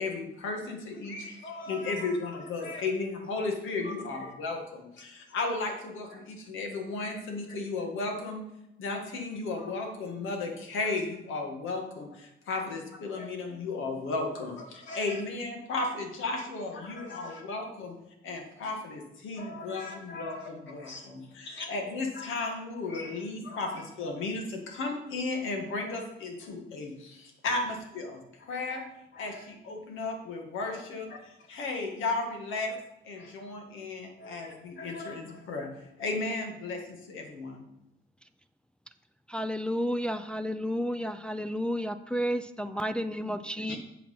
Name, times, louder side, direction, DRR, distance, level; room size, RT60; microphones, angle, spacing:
voice 1, 0.0-1.2 1.7-8.5 8.8-18.0 18.2-28.2 28.5-28.8 29.2-31.1 31.5-32.7 33.1-35.7 36.0-37.6 43.7-43.8, left 3 dB, 85° left, 1.9 m, -34 dB
voice 2, 1.1-2.8 3.8-4.3 6.1-6.2 7.0-7.2 9.5-9.7 10.8-11.0 13.2-13.3 14.9-15.2 16.3-16.4 16.7-17.4 19.3-20.5 20.8-21.0 21.4-21.7 22.1-24.3 25.8-26.0 28.5-28.8 29.1-29.4 30.7-30.8 31.1-31.5 32.7-32.8 33.1-33.3 34.2-35.4 43.6-43.8, left 2 dB, 65° left, 1.8 m, -44 dB
voice 3, 39.3-43.8, equal, 5° left, 0.4 m, -31 dB
8.4 x 6.0 x 5.5 m
cardioid pair, 90°, 20 cm